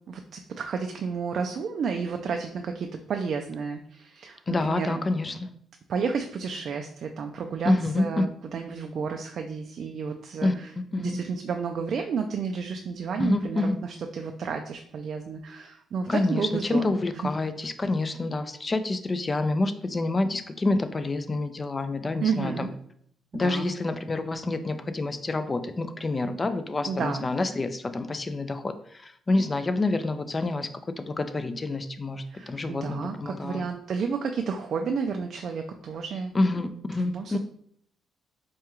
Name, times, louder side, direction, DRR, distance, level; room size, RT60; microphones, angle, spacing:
voice 1, 0.1-5.0 5.9-10.7 11.0-16.8 22.2-22.7 23.3-23.7 26.9-27.3 32.3-36.3 36.9-37.4, right 5 dB, 60° right, 4 dB, 0.3 m, -31 dB
voice 2, 4.5-5.5 7.6-8.3 10.4-10.5 10.9-11.2 13.2-13.8 16.1-22.7 23.3-33.7 36.3-37.4, left 2 dB, 25° left, 10 dB, 0.4 m, -27 dB
4.7 x 2.2 x 3.0 m, 0.66 s
cardioid pair, 90°, 0 cm